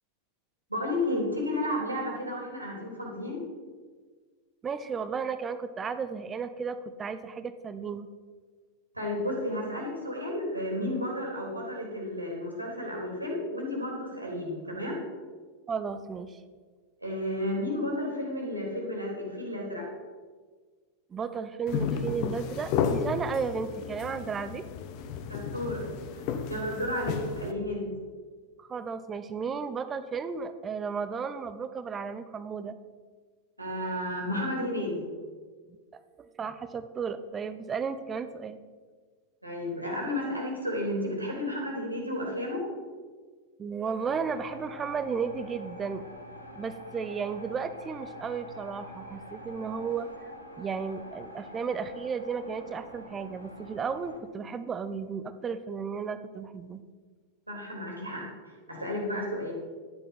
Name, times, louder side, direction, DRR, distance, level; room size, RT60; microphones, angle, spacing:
voice 1, 0.7-3.4 8.9-15.0 17.0-19.9 25.3-25.8 26.1-27.9 33.6-35.1 39.4-42.7 57.5-58.3 58.7-59.5, left 1 dB, 85° right, -1 dB, 3.6 m, -32 dB
voice 2, 4.6-8.1 15.7-16.4 21.1-24.6 28.6-32.8 35.9-38.6 43.6-46.1 46.6-50.1 50.6-56.8, right 5 dB, 20° right, 12 dB, 0.8 m, -34 dB
sound 1, 21.7-27.5, left 6 dB, 45° left, 1.1 m, -33 dB
sound 2, 44.0-54.2, equal, 90° left, 1.9 m, -46 dB
12.0 x 10.0 x 5.7 m, 1.5 s
figure-of-eight pair, 90°, 0 cm